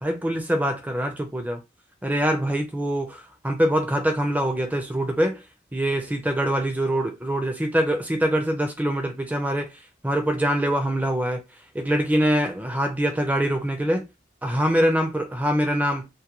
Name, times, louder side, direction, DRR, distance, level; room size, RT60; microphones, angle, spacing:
voice 1, 0.0-1.6 2.0-5.4 5.7-11.4 11.7-14.1 14.4-16.1, right 1 dB, 10° right, 0.4 m, -24 dB
2.3 x 2.2 x 2.9 m
head